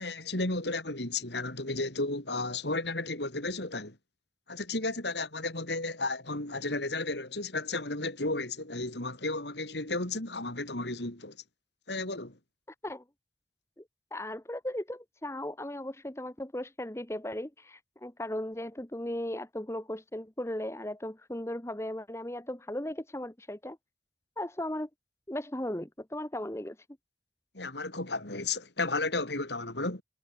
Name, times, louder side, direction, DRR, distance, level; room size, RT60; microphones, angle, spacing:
voice 1, 0.0-4.0 4.5-11.4 11.9-12.4 27.5-30.0, left 2 dB, 70° left, 4.3 m, -33 dB
voice 2, 14.1-23.8 24.4-24.9 25.3-26.8, left 1 dB, 15° left, 1.1 m, -37 dB
head